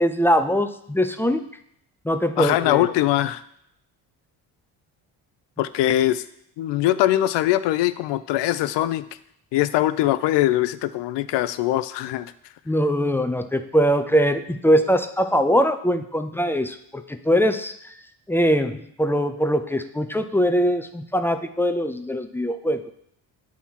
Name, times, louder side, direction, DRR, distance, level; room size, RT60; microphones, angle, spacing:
voice 1, 0.0-1.5 2.0-2.9 12.7-17.9 18.3-22.9, equal, 5° left, 9 dB, 0.4 m, -22 dB
voice 2, 2.4-3.4 5.6-6.2 6.6-9.0 9.5-12.3, left 14 dB, 70° left, 14 dB, 0.6 m, -22 dB
8.4 x 3.0 x 5.6 m, 0.73 s
supercardioid pair, 70°, 45 cm